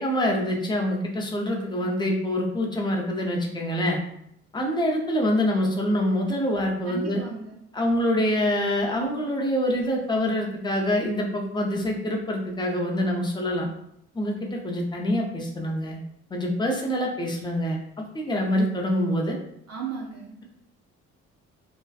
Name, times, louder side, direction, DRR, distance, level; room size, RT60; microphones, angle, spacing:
voice 1, 0.0-4.0 4.5-7.2 7.7-13.7 14.1-16.0 16.3-17.8 18.1-19.4, equal, 15° left, -1 dB, 0.5 m, -25 dB
voice 2, 6.8-7.6 19.7-20.4, right 5 dB, 55° right, -2 dB, 0.5 m, -35 dB
2.6 x 2.1 x 2.3 m, 0.74 s
cardioid pair, 90°, 30 cm